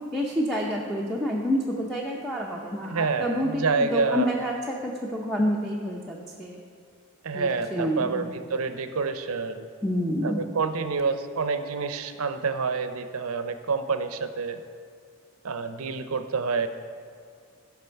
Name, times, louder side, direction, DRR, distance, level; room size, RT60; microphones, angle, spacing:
voice 1, 0.1-6.6 7.3-8.3 9.8-10.4, equal, ahead, -2 dB, 0.6 m, -28 dB
voice 2, 2.9-4.3 7.2-9.7 10.2-14.6 15.4-16.7, right 4 dB, 70° right, 9 dB, 0.6 m, -28 dB
15.5 x 5.9 x 4.6 m, 2.2 s
head